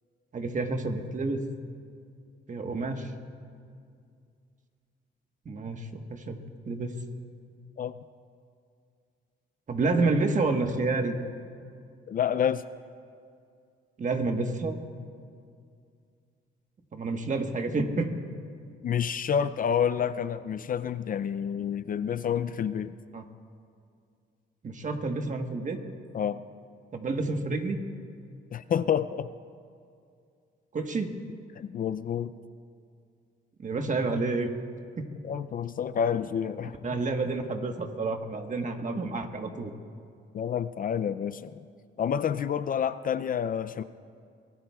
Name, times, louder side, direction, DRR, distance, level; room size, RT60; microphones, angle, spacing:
voice 1, 0.3-1.4 2.5-3.1 5.4-6.4 6.7-6.9 9.7-11.1 14.0-14.8 16.9-18.1 23.1-23.2 24.6-25.8 26.9-27.8 30.7-31.1 33.6-34.5 35.0-35.1 36.8-39.7, right 3 dB, 40° right, 5 dB, 1.3 m, -29 dB
voice 2, 12.1-12.6 18.8-22.9 26.1-26.4 28.5-29.3 31.5-32.3 35.2-37.0 40.3-41.6 42.0-43.8, left 8 dB, 45° left, 13 dB, 0.4 m, -29 dB
25.0 x 18.5 x 2.4 m, 2.3 s
cardioid pair, 90°, 20 cm